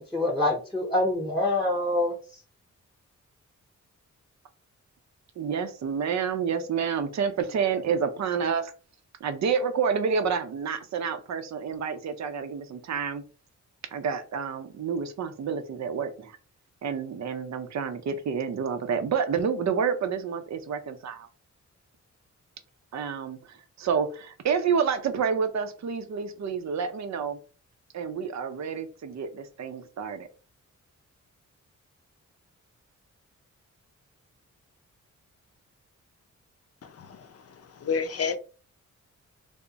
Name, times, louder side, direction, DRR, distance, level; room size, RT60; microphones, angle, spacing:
voice 1, 0.1-2.1, left 2 dB, ahead, 0.8 m, -25 dB
voice 2, 5.4-8.7 9.2-13.2 13.9-16.4 16.8-21.3 22.9-27.4 27.9-30.3, right 6 dB, 65° right, 0.6 m, -29 dB
voice 3, 37.8-38.4, left 5 dB, 50° left, 0.5 m, -29 dB
3.5 x 2.0 x 3.9 m
wide cardioid pair, 100°, 30 cm